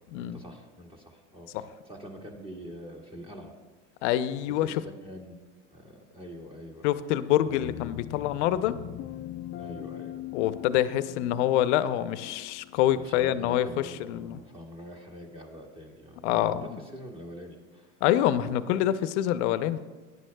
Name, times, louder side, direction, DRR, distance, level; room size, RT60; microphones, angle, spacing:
voice 1, 0.0-3.6 4.5-6.9 9.6-10.2 12.9-18.0, equal, 15° right, 1 dB, 2.0 m, -45 dB
voice 2, 4.0-4.8 6.8-8.8 10.3-14.4 16.2-16.7 18.0-19.8, left 12 dB, 65° left, 13 dB, 0.7 m, -26 dB
sound 1, 7.4-14.0, left 12 dB, 30° left, 0.4 m, -41 dB
18.0 x 10.5 x 2.3 m, 1.3 s
supercardioid pair, 115°, 37 cm